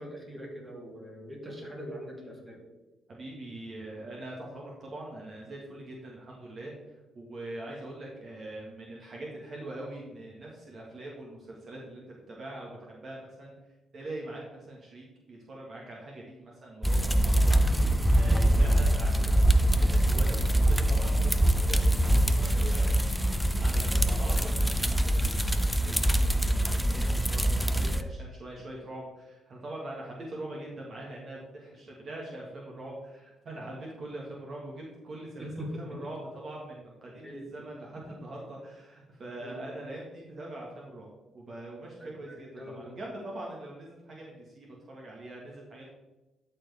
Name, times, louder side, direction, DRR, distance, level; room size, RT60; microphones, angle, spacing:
voice 1, 0.0-2.6 17.6-17.9 18.4-18.8 35.4-35.8 37.0-37.7 39.4-39.6 42.0-43.0, equal, 15° right, -2 dB, 2.8 m, -42 dB
voice 2, 3.1-13.6 13.9-17.5 17.8-23.2 23.6-35.5 35.8-45.9, right 1 dB, 50° right, -3 dB, 1.8 m, -43 dB
sound 1, 16.8-28.0, right 1 dB, ahead, 0.5 m, -24 dB
12.5 x 4.5 x 3.5 m, 1.1 s
cardioid pair, 90°, 0 cm